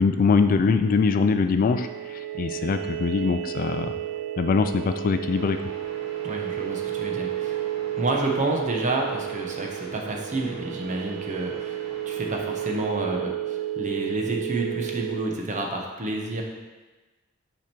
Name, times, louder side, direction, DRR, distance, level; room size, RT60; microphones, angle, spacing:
voice 1, 0.0-3.9 4.4-5.6, left 4 dB, 40° left, 9 dB, 0.3 m, -22 dB
sound 1, 1.7-15.3, right 13 dB, 85° right, 0.3 m, -32 dB
sound 2, 5.3-12.9, equal, 70° right, 1.8 m, -46 dB
voice 2, 6.2-7.7 8.0-16.4, right 2 dB, 35° right, 1 dB, 0.9 m, -29 dB
5.9 x 5.1 x 4.4 m, 1.2 s
head